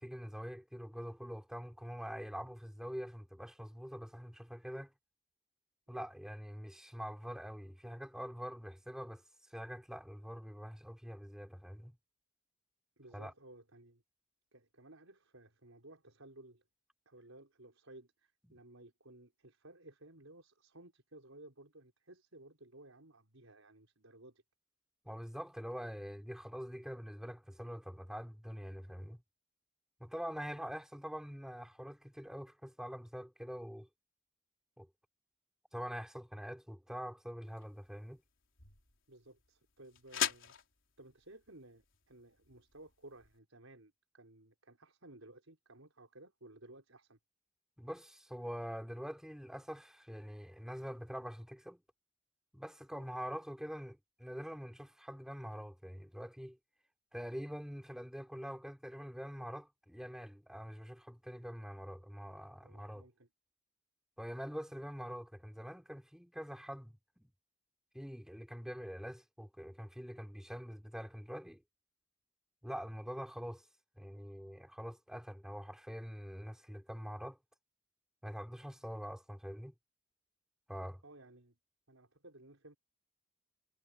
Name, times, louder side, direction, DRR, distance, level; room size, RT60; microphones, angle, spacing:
voice 1, 0.0-4.9 5.9-9.2 9.5-11.9 13.1-13.3 18.5-18.6 25.0-29.2 30.0-33.9 34.8-34.9 35.7-38.2 47.8-51.8 52.5-56.6 57.1-63.0 64.2-67.3 67.9-71.6 72.6-73.6 74.0-77.4 78.2-79.7 80.7-81.0, equal, 5° right, 3.0 m, -45 dB
voice 2, 13.0-14.0 14.5-16.6 17.0-24.4 39.1-40.5 41.0-47.2 52.9-53.1 62.6-63.3 81.0-81.5 81.9-82.8, right 2 dB, 90° right, 5.1 m, -57 dB
sound 1, 37.4-43.4, left 9 dB, 70° left, 3.9 m, -43 dB
head